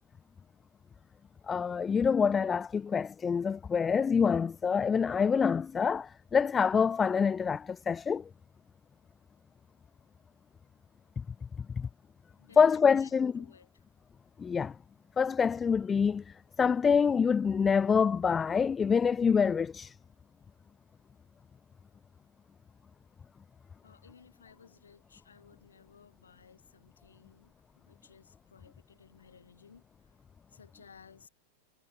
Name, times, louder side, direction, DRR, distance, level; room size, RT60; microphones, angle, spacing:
voice 1, 1.5-8.2 11.8-11.9 12.6-13.4 14.4-14.7 15.2-16.2 16.6-19.9, left 6 dB, 20° left, 0.4 m, -26 dB
voice 2, 12.4-13.1 13.4-13.7 23.8-29.8 30.5-31.3, left 6 dB, 70° left, 7.8 m, -58 dB
figure-of-eight pair, 90°, 0 cm